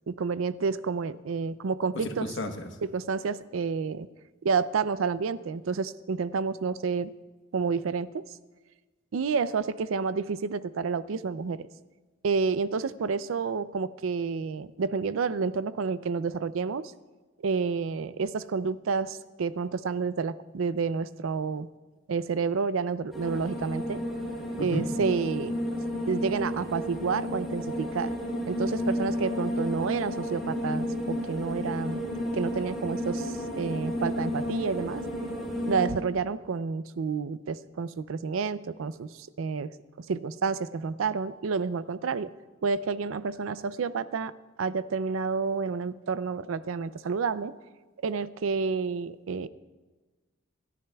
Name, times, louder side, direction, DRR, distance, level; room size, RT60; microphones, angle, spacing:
voice 1, 0.1-2.3 2.8-4.1 4.4-7.1 7.5-8.2 9.1-11.7 12.2-16.9 17.4-21.7 22.1-24.0 24.6-25.5 26.1-28.1 28.5-32.0 32.3-35.0 35.7-39.7 40.0-42.3 42.6-44.3 44.6-47.5 48.0-49.5, right 5 dB, 90° right, 16 dB, 0.4 m, -29 dB
voice 2, 2.0-2.7 24.6-24.9, left 1 dB, 65° left, 5 dB, 1.1 m, -32 dB
sound 1, 23.1-35.9, equal, ahead, 3.2 m, -32 dB
27.0 x 11.0 x 2.3 m, 1.3 s
head